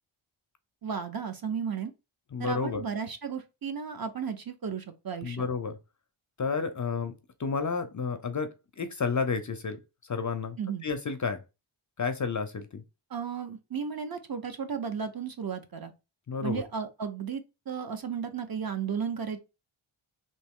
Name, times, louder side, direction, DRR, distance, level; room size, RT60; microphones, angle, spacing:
voice 1, 0.8-1.9 2.4-5.5 10.6-10.9 13.1-15.9 16.4-19.4, right 6 dB, 45° right, 0.6 m, -34 dB
voice 2, 2.3-2.8 5.2-5.7 6.4-7.1 7.4-9.8 10.1-10.6 10.8-11.4 12.0-12.8 16.3-16.6, left 5 dB, 40° left, 0.4 m, -31 dB
3.2 x 2.6 x 3.5 m
wide cardioid pair, 140°, 50 cm